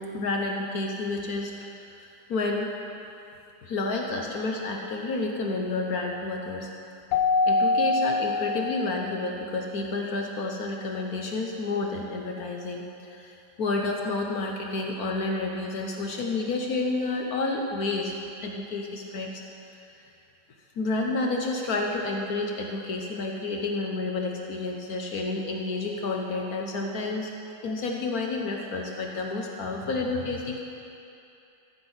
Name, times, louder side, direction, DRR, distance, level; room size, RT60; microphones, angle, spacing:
voice 1, 0.0-1.7 2.0-2.7 3.6-6.7 7.5-18.1 18.4-19.4 20.8-27.3 27.6-30.6, left 3 dB, 65° left, 1 dB, 1.4 m, -30 dB
Keyboard (musical), 7.1-9.4, left 3 dB, 85° left, 1.2 m, -25 dB
14.0 x 6.0 x 8.0 m, 2.7 s
omnidirectional pair, 1.8 m